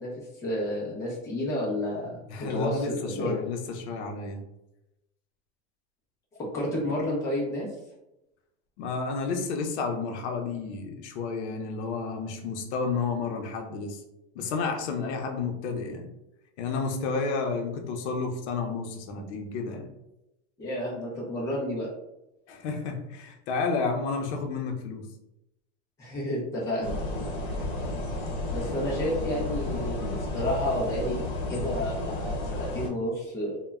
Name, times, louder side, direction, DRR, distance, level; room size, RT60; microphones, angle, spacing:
voice 1, 0.0-2.2 2.5-3.3 6.4-7.7 20.6-21.9 26.0-27.0 28.5-33.6, left 1 dB, 10° left, -5 dB, 0.4 m, -31 dB
voice 2, 2.3-4.4 8.8-14.0 14.3-16.1 16.6-19.9 22.5-25.1 27.6-27.7, left 4 dB, 70° left, 3 dB, 0.6 m, -31 dB
sound 1, 26.8-32.9, left 2 dB, 55° left, 1.0 m, -32 dB
2.1 x 2.1 x 3.4 m, 0.90 s
supercardioid pair, 175°, 35 cm